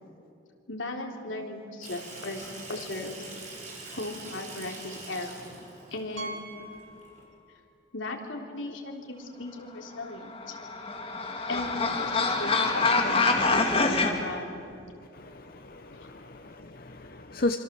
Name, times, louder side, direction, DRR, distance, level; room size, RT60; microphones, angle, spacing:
voice 1, 0.7-3.2 3.9-5.5 5.9-6.4 7.9-10.6 11.5-14.6 15.9-16.1, left 2 dB, 75° left, 1 dB, 3.6 m, -37 dB
Water tap faucet / Sink (filling or washing), 1.8-7.2, right 3 dB, 35° right, 5.4 m, -44 dB
Piano, 6.2-7.8 8.0-8.2 8.8-8.9 9.1-9.2 11.3-11.4, right 2 dB, 75° right, 1.9 m, -43 dB
sound 1, 10.2-14.1, left 3 dB, 30° left, 2.4 m, -25 dB
voice 2, 15.1-17.6, left 2 dB, 45° left, 6 dB, 0.9 m, -34 dB
26.5 x 26.0 x 7.7 m, 2.6 s
head